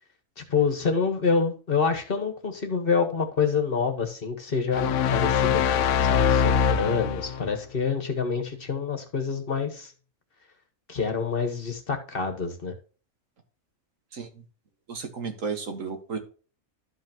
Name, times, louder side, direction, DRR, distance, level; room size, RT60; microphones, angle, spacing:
voice 1, 0.4-9.9 10.9-12.7, left 5 dB, 45° left, 6 dB, 1.6 m, -27 dB
sound 1, 4.7-7.5, left 7 dB, 75° left, 0.9 m, -23 dB
voice 2, 14.9-16.2, right 5 dB, 80° right, 5 dB, 2.0 m, -33 dB
12.5 x 5.7 x 2.9 m, 0.37 s
omnidirectional pair, 1.3 m